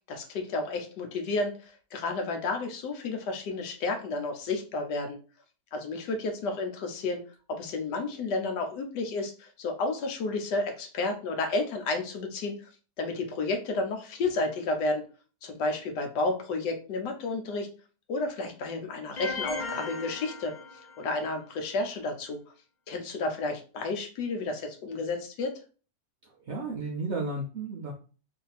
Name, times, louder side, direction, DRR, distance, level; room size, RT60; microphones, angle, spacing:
voice 1, 0.0-5.2 5.7-7.2 7.5-12.6 13.0-15.0 15.4-17.7 18.1-20.5 21.0-22.4 22.9-25.5, left 3 dB, 85° left, 4 dB, 1.4 m, -31 dB
sound 1, 19.2-21.3, left 3 dB, 45° left, 0.6 m, -37 dB
voice 2, 26.2-27.9, right 3 dB, 55° right, -2 dB, 0.8 m, -33 dB
3.3 x 2.7 x 4.0 m, 0.37 s
omnidirectional pair, 1.8 m